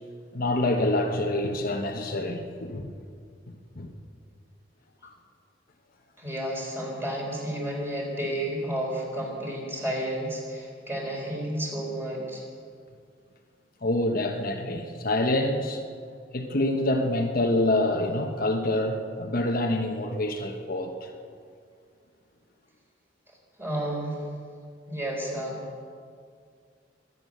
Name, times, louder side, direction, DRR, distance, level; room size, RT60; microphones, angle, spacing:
voice 1, 0.3-3.0 3.8-3.9 5.0-5.1 13.8-15.8 16.3-21.1, left 1 dB, 50° left, 3 dB, 1.1 m, -26 dB
voice 2, 6.2-12.4 23.6-24.3 24.9-25.6, right 1 dB, 15° right, -2 dB, 4.0 m, -31 dB
23.5 x 9.2 x 6.6 m, 2.2 s
head